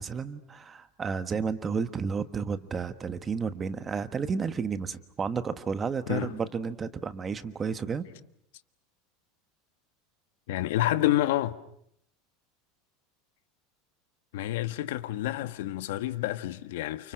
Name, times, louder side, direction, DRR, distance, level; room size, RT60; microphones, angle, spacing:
voice 1, 0.0-8.1, right 5 dB, 20° right, 1.3 m, -32 dB
voice 2, 10.5-11.6 14.3-17.1, left 14 dB, 80° left, 1.4 m, -28 dB
29.5 x 29.0 x 6.4 m
supercardioid pair, 155°, 0 cm